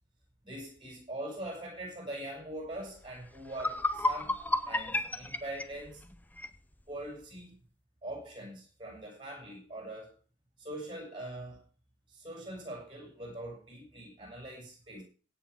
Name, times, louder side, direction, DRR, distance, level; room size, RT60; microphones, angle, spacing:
voice 1, 0.4-4.4 4.7-6.0 6.9-7.6 8.0-10.1 10.6-11.6 12.1-15.0, right 1 dB, 25° right, 6.8 m, -42 dB
sound 1, 3.1-3.2 3.5-6.6, left 2 dB, 10° left, 0.6 m, -32 dB
16.5 x 8.1 x 4.9 m
head